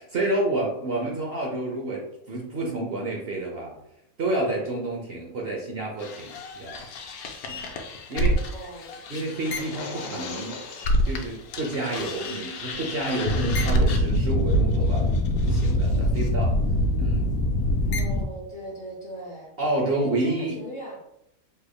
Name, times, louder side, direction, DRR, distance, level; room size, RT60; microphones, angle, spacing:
voice 1, 0.0-3.7 4.2-6.8 7.5-7.6 8.1-8.4 9.1-10.6 11.0-16.6 17.0-17.3 19.6-20.6, right 2 dB, 65° right, -1 dB, 0.6 m, -29 dB
sound 1, 6.0-11.3 11.5-18.2, equal, 75° left, 1.0 m, -25 dB
voice 2, 8.5-8.9 9.2-9.5 17.9-19.5 19.9-21.0, equal, 55° left, -4 dB, 0.5 m, -39 dB
sound 2, 9.4-11.2, left 3 dB, 90° left, 1.3 m, -38 dB
Bass guitar, 14.1-18.4, equal, 80° right, 1.5 m, -41 dB
3.6 x 3.2 x 2.2 m, 0.79 s
omnidirectional pair, 1.7 m